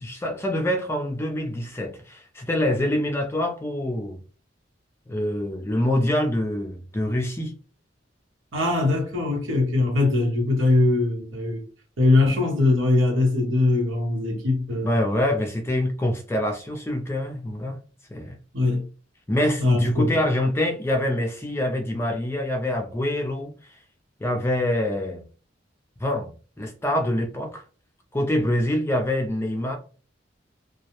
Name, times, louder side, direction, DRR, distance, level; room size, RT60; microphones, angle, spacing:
voice 1, 0.0-4.2 5.1-7.5 14.8-17.8 18.1-18.4 19.3-23.5 24.2-25.2 26.0-26.3 26.6-27.6 28.1-29.8, left 1 dB, 15° left, 0.4 m, -25 dB
voice 2, 8.5-11.6 12.0-14.9 18.5-18.8 19.6-20.2, left 2 dB, 90° right, 0.9 m, -21 dB
2.3 x 2.0 x 2.9 m
head